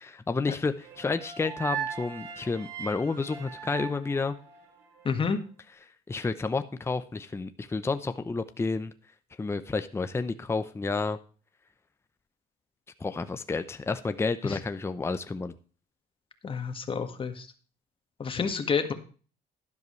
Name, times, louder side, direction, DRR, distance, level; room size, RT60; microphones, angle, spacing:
voice 1, 0.0-4.4 6.1-8.9 9.4-11.2 13.0-15.5, left 4 dB, 15° left, 10 dB, 0.7 m, -30 dB
sound 1, 0.8-5.0, right 8 dB, 90° right, 2.6 m, -39 dB
voice 2, 5.0-5.4 14.4-14.6 16.4-17.5 18.2-18.9, left 5 dB, 30° left, 7 dB, 1.7 m, -29 dB
12.0 x 11.0 x 3.2 m, 0.39 s
cardioid pair, 110°, 17 cm